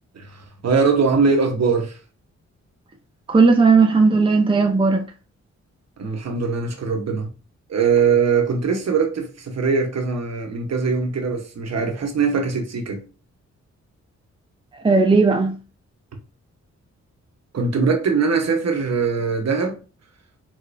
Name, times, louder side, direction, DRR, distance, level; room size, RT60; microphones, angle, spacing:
voice 1, 0.1-2.0 6.0-7.3 7.7-13.0 17.5-19.8, right 5 dB, 60° right, 1.1 m, -21 dB
voice 2, 3.3-5.0 14.7-15.6, right 4 dB, 15° right, 0.6 m, -16 dB
5.0 x 3.6 x 2.6 m
wide cardioid pair, 100°, 29 cm